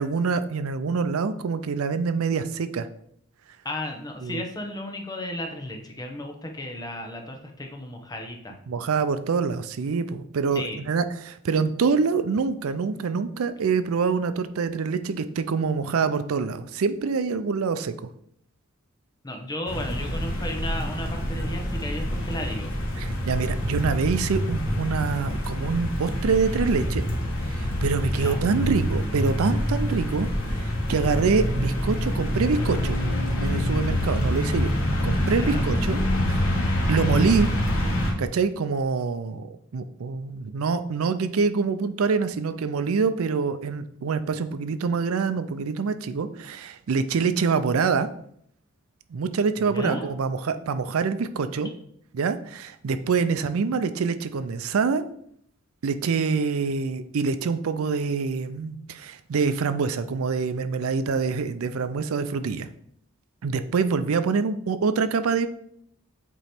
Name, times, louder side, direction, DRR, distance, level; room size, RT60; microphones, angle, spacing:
voice 1, 0.0-2.9 4.2-4.4 8.7-17.9 23.0-27.0 27.5-33.0 33.4-34.8 35.0-36.0 36.3-37.5 38.2-48.1 49.1-51.7 52.1-55.0 55.8-62.7 63.4-65.5, right 5 dB, 80° right, 11 dB, 0.4 m, -25 dB
voice 2, 3.6-8.5 10.5-10.8 19.2-22.7 28.1-28.4 35.3-35.7 49.6-50.1, left 1 dB, 20° left, 3 dB, 0.8 m, -34 dB
sound 1, 19.7-38.1, equal, 80° left, 1.8 m, -26 dB
8.2 x 3.0 x 4.3 m, 0.68 s
head